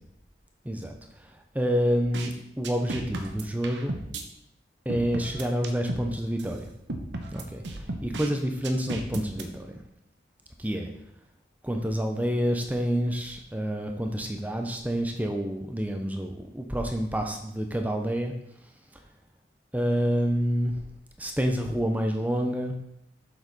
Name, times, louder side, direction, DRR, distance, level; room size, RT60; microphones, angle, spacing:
voice 1, 1.2-4.0 4.8-6.7 7.3-9.8 10.6-10.9 11.6-18.3 19.7-20.8 21.2-22.8, equal, 10° right, 3 dB, 0.8 m, -28 dB
sound 1, 2.1-2.3 2.6-4.2 4.9-6.1 6.4-6.5 6.9-8.3 8.6-9.4, right 2 dB, 85° right, 1.0 m, -35 dB
7.5 x 6.7 x 4.1 m, 0.77 s
head